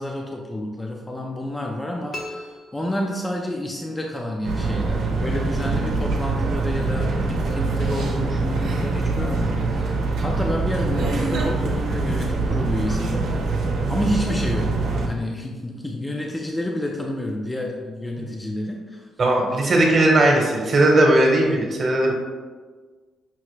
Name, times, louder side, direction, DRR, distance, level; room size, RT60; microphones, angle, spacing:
voice 1, 0.0-13.3 13.9-14.7 15.1-19.1, left 1 dB, 15° left, 0 dB, 0.4 m, -29 dB
sound 1, 2.1-3.7, left 1 dB, 50° left, 0.8 m, -38 dB
sound 2, 4.4-15.1, right 3 dB, 80° right, 0.7 m, -24 dB
voice 2, 19.2-22.1, right 1 dB, 45° right, 0 dB, 0.9 m, -17 dB
5.7 x 2.1 x 3.1 m, 1.4 s
cardioid pair, 100°, 0 cm